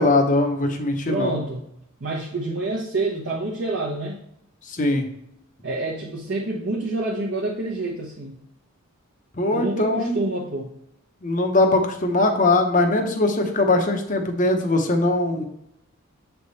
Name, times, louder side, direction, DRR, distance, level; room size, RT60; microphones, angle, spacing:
voice 1, 0.0-1.4 4.7-5.0 9.4-10.3 11.2-15.4, left 2 dB, 35° left, 5 dB, 0.8 m, -21 dB
voice 2, 1.1-1.6 2.0-4.2 5.6-8.4 9.5-10.7, right 2 dB, 50° right, -3 dB, 0.8 m, -27 dB
7.2 x 3.5 x 4.0 m, 0.77 s
head